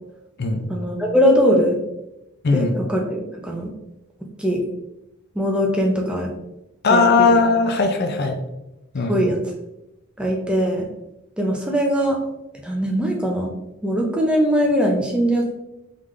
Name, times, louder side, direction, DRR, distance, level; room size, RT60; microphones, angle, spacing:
voice 1, 0.7-1.8 2.5-3.7 4.4-4.6 5.4-6.3 6.9-7.3 9.1-9.5 10.2-10.9 11.4-12.2 12.6-13.5 13.8-15.5, equal, 5° right, 0 dB, 0.5 m, -21 dB
voice 2, 6.8-8.4 8.9-9.2, left 4 dB, 50° left, 5 dB, 0.5 m, -18 dB
3.7 x 3.7 x 3.2 m, 0.91 s
head